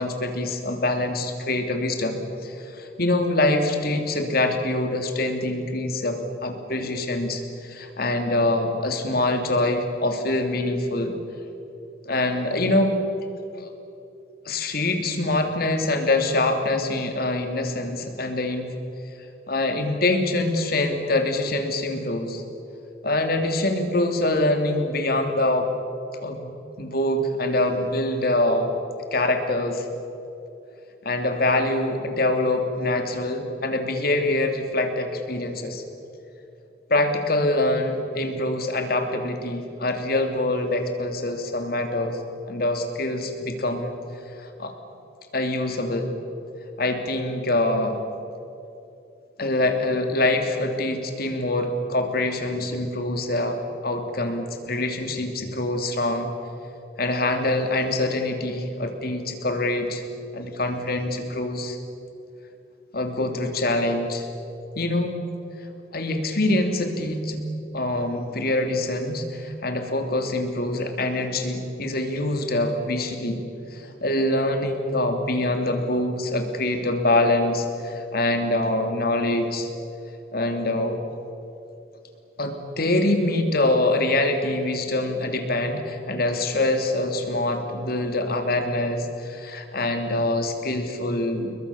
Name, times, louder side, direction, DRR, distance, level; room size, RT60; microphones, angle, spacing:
voice 1, 0.0-11.2 12.0-13.0 13.6-13.7 14.4-18.7 19.5-22.4 23.0-25.7 26.2-26.5 26.8-28.7 29.1-29.9 31.0-35.8 36.9-42.2 42.5-43.9 44.4-44.7 45.3-46.1 46.8-48.0 49.4-53.6 53.8-56.3 57.0-60.0 60.3-61.8 62.9-64.3 64.7-65.2 65.6-67.4 67.7-73.4 73.7-79.7 80.3-81.0 82.4-91.6, left 2 dB, 55° left, 5 dB, 2.9 m, -24 dB
29.5 x 22.0 x 7.1 m, 2.9 s
head